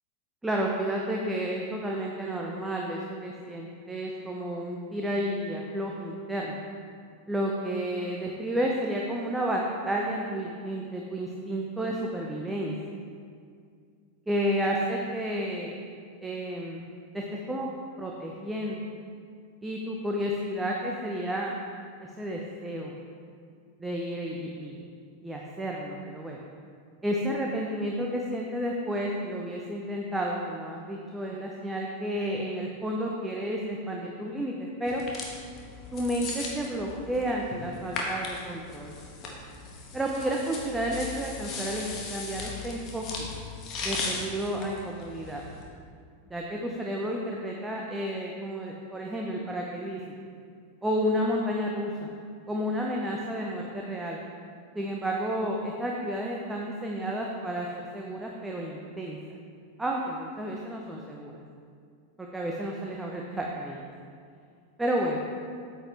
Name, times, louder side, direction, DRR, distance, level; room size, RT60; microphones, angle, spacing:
voice 1, 0.4-6.5 7.3-12.7 14.3-15.8 16.2-16.9 17.1-17.7 18.0-18.9 19.6-21.5 22.0-22.9 23.8-24.8 25.2-26.4 27.0-35.0 35.9-38.9 39.9-43.3 43.8-45.4 46.3-50.0 50.8-52.1 52.5-54.2 54.7-59.2 59.8-61.3 62.2-63.9 64.8-65.2, equal, 10° right, -1 dB, 0.7 m, -31 dB
sound 1, 34.9-45.6, left 3 dB, 35° left, 1.5 m, -38 dB
8.8 x 8.2 x 3.4 m, 2.2 s
figure-of-eight pair, 90°, 0 cm